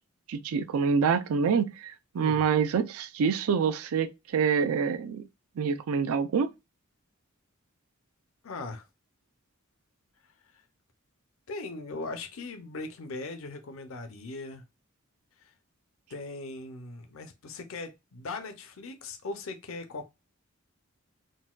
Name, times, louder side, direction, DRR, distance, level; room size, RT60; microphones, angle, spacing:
voice 1, 0.3-5.3 5.6-6.5, right 6 dB, 90° right, 0.4 m, -26 dB
voice 2, 8.4-8.9 11.5-14.6 16.1-20.1, left 3 dB, 70° left, 0.6 m, -39 dB
3.8 x 2.2 x 2.3 m
head